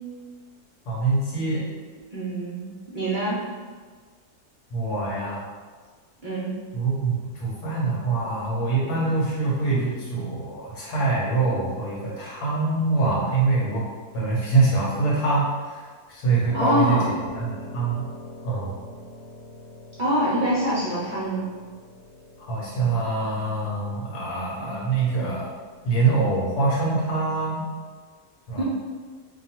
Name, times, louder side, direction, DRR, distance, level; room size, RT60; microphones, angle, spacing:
voice 1, 0.9-1.6 4.7-5.4 6.7-13.8 14.1-17.0 17.3-18.0 18.4-18.8 22.5-25.5 25.8-27.7 28.5-28.6, right 3 dB, 80° left, -6 dB, 1.6 m, -24 dB
voice 2, 2.1-2.6 2.9-3.4 6.2-6.5 16.5-17.1 20.0-21.5 28.5-28.6, equal, 45° right, -9 dB, 0.7 m, -24 dB
Piano, 16.5-26.6, left 2 dB, 45° left, 0.4 m, -42 dB
3.1 x 2.3 x 4.3 m, 1.5 s
omnidirectional pair, 1.6 m